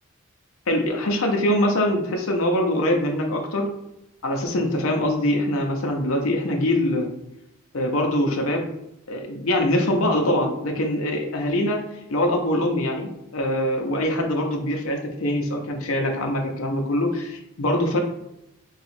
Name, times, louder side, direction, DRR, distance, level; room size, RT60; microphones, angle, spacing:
voice 1, 0.7-3.7 4.2-7.1 7.7-8.7 9.1-11.8 12.1-18.0, left 1 dB, 65° left, 2 dB, 0.6 m, -23 dB
2.8 x 2.3 x 4.2 m, 0.87 s
head